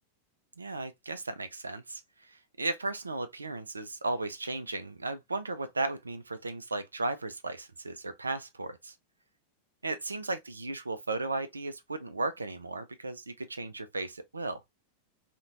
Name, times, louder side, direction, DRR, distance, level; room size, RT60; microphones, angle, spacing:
voice 1, 0.6-8.9 9.8-14.6, right 2 dB, 80° right, 0.3 m, -35 dB
2.5 x 2.1 x 2.7 m
figure-of-eight pair, 90°, 0 cm